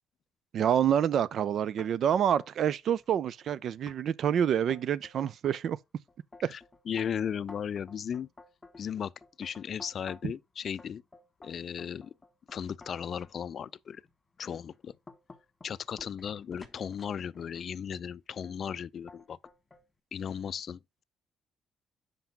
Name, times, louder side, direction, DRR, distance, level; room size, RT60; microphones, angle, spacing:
voice 1, 0.5-5.8 6.4-6.5 10.2-10.3, right 9 dB, 65° right, 0.4 m, -27 dB
sound 1, 1.8-2.7 3.0-3.5 3.9-4.0 4.4-5.6 6.1-10.4 10.8-13.3 14.0-14.1 14.6-17.7 18.4-18.8 19.1-19.8, left 3 dB, 25° left, 1.7 m, -52 dB
voice 2, 6.9-8.3 8.8-9.1 9.4-11.0 11.4-12.1 12.5-14.0 14.4-14.9 15.6-19.4 20.1-21.0, left 8 dB, 55° left, 0.4 m, -36 dB
5.8 x 5.3 x 5.8 m
cardioid pair, 90°, 0 cm